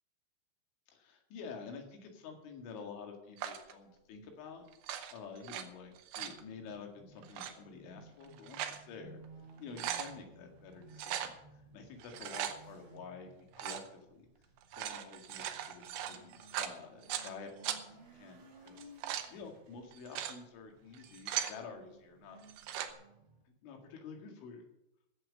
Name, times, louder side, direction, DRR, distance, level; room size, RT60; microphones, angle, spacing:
voice 1, 0.9-4.6 5.1-9.2 9.6-11.3 11.7-14.3 14.8-17.8 18.1-22.4 23.6-24.7, left 5 dB, 75° left, 3 dB, 4.4 m, -49 dB
sound 1, 3.4-3.7 4.7-5.6 6.0-6.4 7.2-7.5 8.2-8.8 9.2-9.3 9.6-10.1 10.9-11.3 12.0-12.6 13.5-13.9 14.6-17.3 17.6-17.8 18.7-19.3 19.9-20.4 20.9-21.6 22.4-22.9, right 10 dB, 75° right, 2.4 m, -39 dB
sound 2, 6.2-23.4, right 2 dB, 35° right, 3.8 m, -59 dB
14.0 x 7.6 x 7.5 m, 0.84 s
omnidirectional pair, 5.5 m